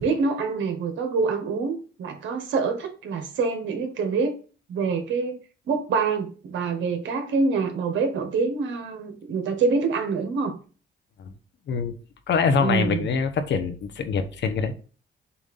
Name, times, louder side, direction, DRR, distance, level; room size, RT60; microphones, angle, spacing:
voice 1, 0.0-4.3 4.7-5.4 5.7-10.5 12.6-13.1, right 4 dB, 70° right, 1.4 m, -26 dB
voice 2, 12.3-14.7, left 5 dB, 65° left, 1.0 m, -24 dB
7.0 x 2.6 x 5.4 m
cardioid pair, 90°, 20 cm